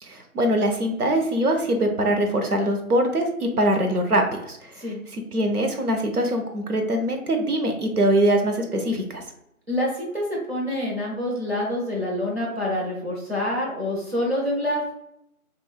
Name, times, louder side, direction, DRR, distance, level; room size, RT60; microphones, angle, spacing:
voice 1, 0.0-4.9 5.1-9.2, right 1 dB, 85° right, 4 dB, 0.9 m, -23 dB
voice 2, 9.7-14.8, left 1 dB, 45° right, -3 dB, 1.0 m, -26 dB
3.4 x 2.6 x 2.3 m, 0.80 s
figure-of-eight pair, 175°, 44 cm